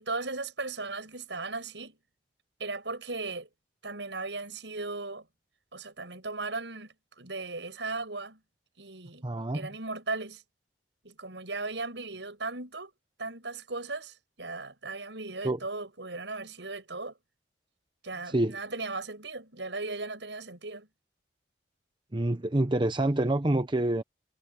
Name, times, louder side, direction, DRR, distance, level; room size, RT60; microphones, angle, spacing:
voice 1, 0.0-2.0 2.6-3.5 3.8-5.3 5.7-8.4 8.8-9.3 9.5-10.4 11.0-12.9 13.2-17.2 18.0-20.9, right 3 dB, 80° right, 7.0 m, -37 dB
voice 2, 9.2-9.7 15.4-15.6 18.3-18.6 22.1-24.0, right 1 dB, 25° right, 0.8 m, -27 dB
head